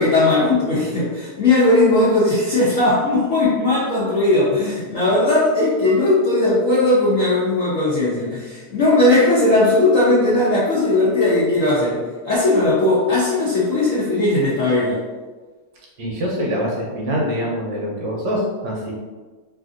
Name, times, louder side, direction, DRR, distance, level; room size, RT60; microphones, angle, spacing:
voice 1, 0.0-15.0, left 2 dB, 90° left, -8 dB, 0.7 m, -18 dB
voice 2, 16.0-18.9, equal, 70° right, -3 dB, 1.2 m, -24 dB
3.2 x 2.6 x 2.4 m, 1.3 s
omnidirectional pair, 2.3 m